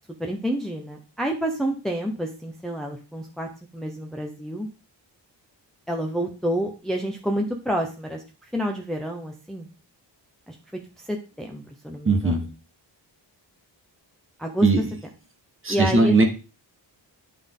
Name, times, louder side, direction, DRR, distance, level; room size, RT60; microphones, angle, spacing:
voice 1, 0.2-4.7 5.9-8.2 8.5-9.7 10.5-10.6 11.1-12.4 14.4-14.7 15.7-16.2, equal, ahead, 2 dB, 0.7 m, -29 dB
voice 2, 12.0-12.5 14.6-14.9 15.6-16.2, right 3 dB, 30° right, 4 dB, 1.3 m, -19 dB
10.0 x 3.7 x 3.7 m, 0.33 s
wide cardioid pair, 155°, 45 cm